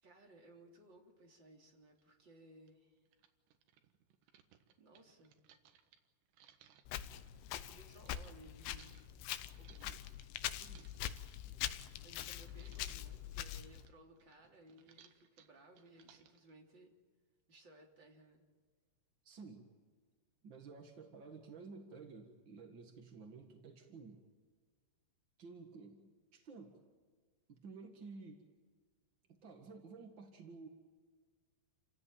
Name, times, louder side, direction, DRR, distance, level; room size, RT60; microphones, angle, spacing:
voice 1, 0.0-3.0 4.8-5.4 7.5-9.2 12.0-16.9 17.5-18.5, right 1 dB, 30° right, 0 dB, 3.4 m, -61 dB
sound 1, 2.0-2.1 2.7-2.8 3.1-8.3 8.8-12.2 12.5-13.2 13.5-16.5, right 9 dB, 75° right, 3.5 m, -66 dB
Walk footsteps, 6.9-13.9, left 12 dB, 80° left, 3.1 m, -44 dB
voice 2, 9.6-10.1 10.5-10.9 11.4-11.8 19.2-19.7 20.4-24.2 25.4-26.8 27.5-28.5 29.3-30.7, right 4 dB, 50° right, 3 dB, 1.4 m, -53 dB
29.5 x 16.5 x 9.0 m, 1.5 s
omnidirectional pair, 5.1 m